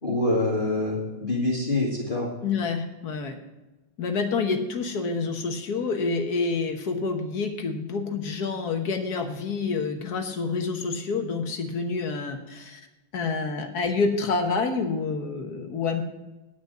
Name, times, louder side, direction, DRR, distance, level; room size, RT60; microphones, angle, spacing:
voice 1, 0.0-2.3, left 2 dB, 25° left, -4 dB, 2.1 m, -25 dB
voice 2, 2.4-3.4 4.0-12.8 13.1-16.0, left 4 dB, 55° left, 5 dB, 1.6 m, -28 dB
10.0 x 6.1 x 7.8 m, 1.0 s
omnidirectional pair, 2.1 m